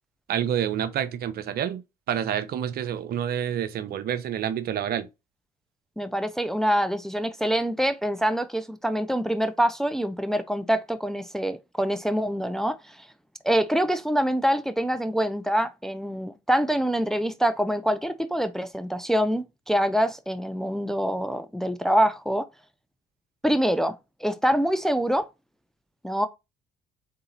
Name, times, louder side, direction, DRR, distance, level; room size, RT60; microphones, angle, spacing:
voice 1, 0.3-1.8 2.1-5.1, right 9 dB, 60° right, 0.7 m, -28 dB
voice 2, 6.0-13.1 13.4-22.5 23.4-25.3 26.0-26.3, equal, ahead, 0.5 m, -25 dB
3.9 x 2.8 x 3.9 m
hypercardioid pair, 60°, 18 cm